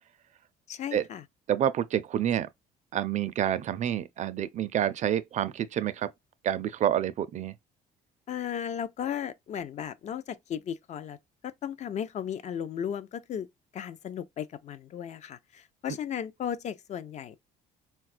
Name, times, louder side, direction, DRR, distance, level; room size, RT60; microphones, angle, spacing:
voice 1, 0.7-1.2 8.3-11.2 11.4-13.5 13.7-17.4, left 9 dB, 45° left, 0.4 m, -35 dB
voice 2, 1.5-2.5 2.9-6.1 6.4-7.5, right 10 dB, 45° right, 0.4 m, -28 dB
4.1 x 2.3 x 2.4 m
cardioid pair, 110°, 17 cm